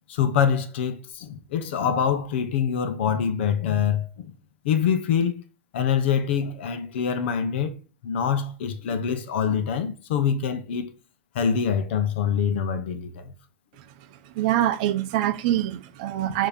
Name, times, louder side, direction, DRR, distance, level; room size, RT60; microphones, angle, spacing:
voice 1, 0.1-4.4 4.6-5.4 5.7-7.8 8.0-10.9 11.3-13.3, left 7 dB, 55° left, 0.8 m, -25 dB
voice 2, 14.4-16.5, right 13 dB, 40° right, 0.7 m, -24 dB
7.0 x 2.9 x 5.2 m
supercardioid pair, 180°, 7 cm